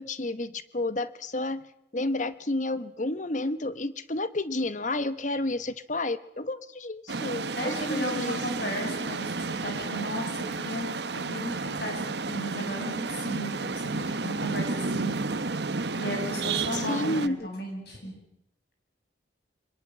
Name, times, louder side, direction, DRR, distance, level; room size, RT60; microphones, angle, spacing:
voice 1, 0.0-1.6 1.9-8.4 16.7-17.5, left 2 dB, 40° left, 13 dB, 1.0 m, -31 dB
sound 1, 7.1-17.3, right 3 dB, 65° right, 1.1 m, -32 dB
voice 2, 7.5-10.9 11.2-15.2 16.0-18.1, equal, 55° left, 2 dB, 7.6 m, -35 dB
23.5 x 21.5 x 7.5 m, 0.80 s
head